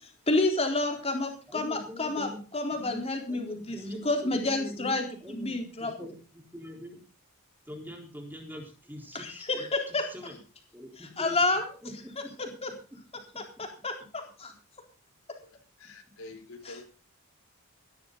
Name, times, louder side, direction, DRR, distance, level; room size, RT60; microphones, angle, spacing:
voice 1, 0.3-2.3 2.5-3.8 4.0-6.1 9.1-10.1 11.2-11.7 12.6-12.7 13.6-14.5 16.7-16.8, left 2 dB, 30° left, 3 dB, 3.9 m, -29 dB
voice 2, 1.5-2.4 2.7-4.9 5.2-7.0 7.7-10.4 10.7-11.4 11.8-12.3 13.3-13.4, equal, 10° right, 2 dB, 4.1 m, -43 dB
voice 3, 15.4-16.8, left 2 dB, 70° left, 5 dB, 4.5 m, -47 dB
18.0 x 12.5 x 4.0 m, 0.35 s
head